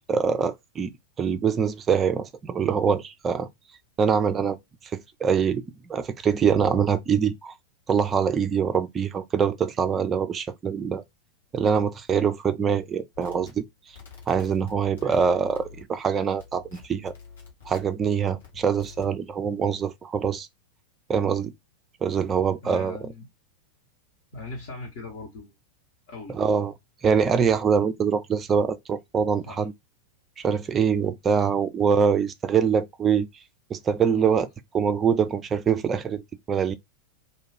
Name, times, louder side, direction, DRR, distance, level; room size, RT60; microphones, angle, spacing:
voice 1, 0.1-0.9 1.2-3.5 4.0-4.6 4.9-7.6 7.9-11.0 11.5-13.6 14.3-17.1 17.7-20.5 21.1-21.5 22.0-23.0 26.3-26.7 27.0-29.7 30.4-33.3 33.7-34.5 34.7-36.7, right 6 dB, 20° right, 0.4 m, -24 dB
sound 1, 13.1-16.1 16.4-18.1 18.4-19.1, left 6 dB, 70° left, 1.3 m, -47 dB
voice 2, 22.6-23.3 24.3-25.5 26.1-26.4 29.5-29.7 34.1-34.4, left 3 dB, 50° left, 0.9 m, -40 dB
2.5 x 2.3 x 3.3 m
figure-of-eight pair, 90°, 0 cm